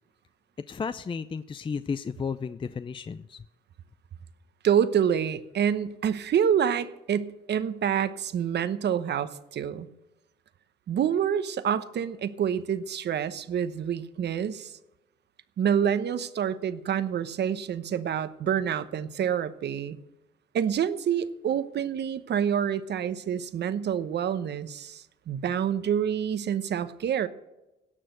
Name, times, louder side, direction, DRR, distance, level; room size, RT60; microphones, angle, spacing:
voice 1, 0.7-3.4, left 5 dB, 25° left, 13 dB, 0.5 m, -33 dB
voice 2, 4.6-9.9 10.9-14.7 15.6-20.0 20.5-27.3, right 8 dB, 60° right, 13 dB, 0.9 m, -27 dB
17.5 x 6.3 x 7.8 m, 1.0 s
cardioid pair, 90°, 20 cm